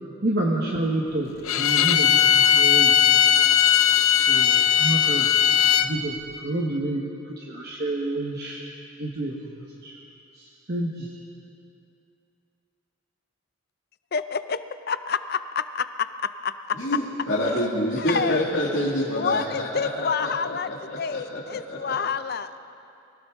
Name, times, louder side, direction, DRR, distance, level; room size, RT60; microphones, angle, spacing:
voice 1, 0.2-3.2 4.1-5.3 5.8-8.7 9.0-9.9 10.4-11.1, right 1 dB, 50° right, -2 dB, 1.2 m, -29 dB
Bowed string instrument, 1.4-5.9, left 9 dB, 90° left, 0.7 m, -18 dB
voice 2, 14.1-14.6 14.9-15.9 16.2-16.8 18.0-18.5 19.2-22.6, left 5 dB, 50° left, 12 dB, 0.5 m, -28 dB
voice 3, 16.7-21.4 21.7-21.9, left 1 dB, 65° left, -6 dB, 2.0 m, -27 dB
23.5 x 16.0 x 3.7 m, 2.6 s
head